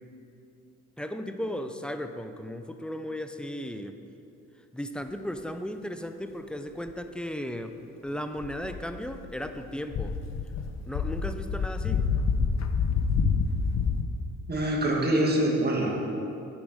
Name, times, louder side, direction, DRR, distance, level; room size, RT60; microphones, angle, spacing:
voice 1, 1.0-4.0 4.7-7.8 8.0-10.2 10.9-12.1, equal, 5° left, 8 dB, 0.4 m, -35 dB
sound 1, 8.4-9.5 9.9-14.0, left 5 dB, 60° left, 0.8 m, -27 dB
voice 2, 14.5-15.9, right 1 dB, 30° right, -1 dB, 1.7 m, -24 dB
8.8 x 4.8 x 6.3 m, 2.8 s
cardioid pair, 90°, 30 cm